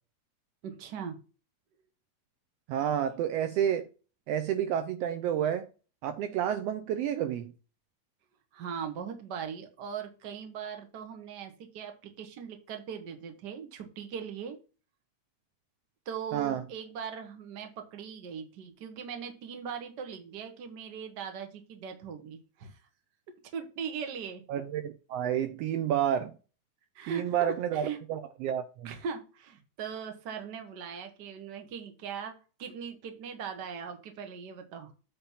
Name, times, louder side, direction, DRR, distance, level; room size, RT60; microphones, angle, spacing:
voice 1, 0.6-1.2 8.5-14.6 16.0-22.8 23.5-24.4 26.9-28.0 28.8-34.9, right 7 dB, 55° right, 1.2 m, -40 dB
voice 2, 2.7-3.8 4.3-5.7 6.0-7.5 16.3-16.6 24.5-26.3 27.1-28.9, right 10 dB, 90° right, 1.4 m, -30 dB
8.8 x 3.5 x 5.6 m
omnidirectional pair, 3.5 m